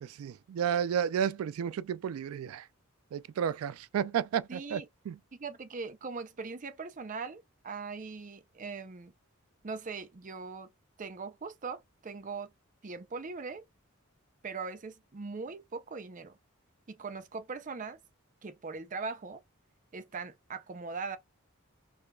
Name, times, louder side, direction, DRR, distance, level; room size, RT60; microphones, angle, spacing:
voice 1, 0.0-2.6 3.1-5.2, right 8 dB, 85° right, 0.3 m, -32 dB
voice 2, 4.5-4.9 5.3-9.1 9.6-10.7 11.0-12.5 12.8-13.6 14.4-16.3 16.9-18.0 18.4-19.4 19.9-21.2, right 4 dB, 40° right, 0.5 m, -40 dB
4.8 x 2.4 x 2.2 m
head